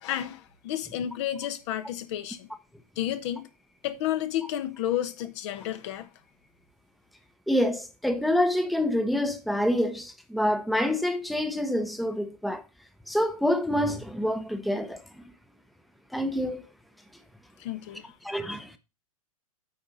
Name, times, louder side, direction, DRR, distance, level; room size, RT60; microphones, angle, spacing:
voice 1, 0.0-2.5 3.0-3.5 3.8-6.1 17.6-18.1, left 11 dB, 55° left, 1.2 m, -31 dB
voice 2, 7.5-12.6 13.1-15.0 16.1-16.7 18.2-18.8, left 1 dB, ahead, 0.8 m, -27 dB
8.9 x 4.9 x 5.4 m
figure-of-eight pair, 95°, 18 cm